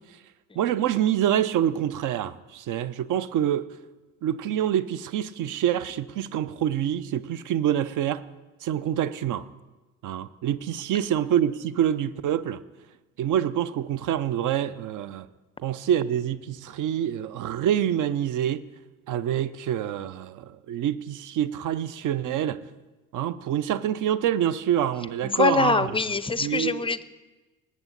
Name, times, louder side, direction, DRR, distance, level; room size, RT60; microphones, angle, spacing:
voice 1, 0.6-3.7 4.2-8.2 8.6-9.4 10.0-12.6 13.2-15.3 15.6-18.6 19.1-22.6 23.1-25.9 26.4-26.9, right 10 dB, 50° right, 0.7 m, -26 dB
voice 2, 25.2-27.0, left 4 dB, 15° left, 0.6 m, -24 dB
19.0 x 8.4 x 4.1 m
hypercardioid pair, 55°, 40 cm